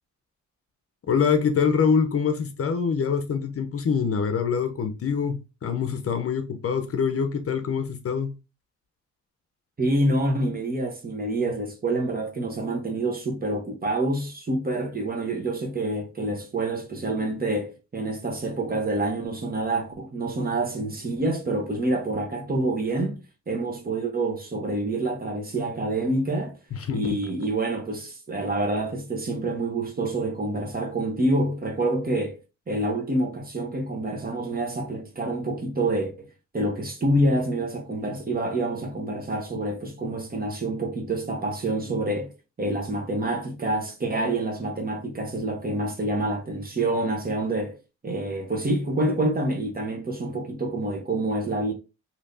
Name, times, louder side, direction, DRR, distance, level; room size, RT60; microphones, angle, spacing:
voice 1, 1.1-8.3 26.7-27.2, left 6 dB, 50° left, 0.7 m, -25 dB
voice 2, 9.8-23.2 23.5-26.5 26.9-32.4 32.7-36.3 36.5-42.3 42.6-47.8 48.0-51.7, right 2 dB, 30° right, 1.0 m, -27 dB
3.2 x 2.8 x 2.7 m
cardioid pair, 75°, 30 cm